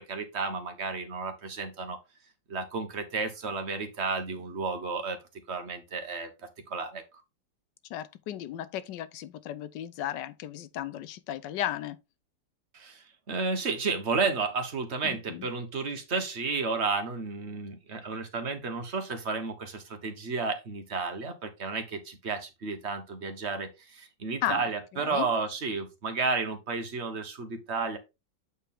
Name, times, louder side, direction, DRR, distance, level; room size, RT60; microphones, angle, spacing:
voice 1, 0.0-2.0 2.5-5.2 5.5-6.3 6.7-7.0 12.7-28.0, right 4 dB, 40° right, 1.4 m, -32 dB
voice 2, 7.9-12.0 15.0-15.5 24.4-24.6 24.9-25.3, left 12 dB, 90° left, 1.3 m, -35 dB
8.2 x 4.5 x 3.6 m
omnidirectional pair, 1.8 m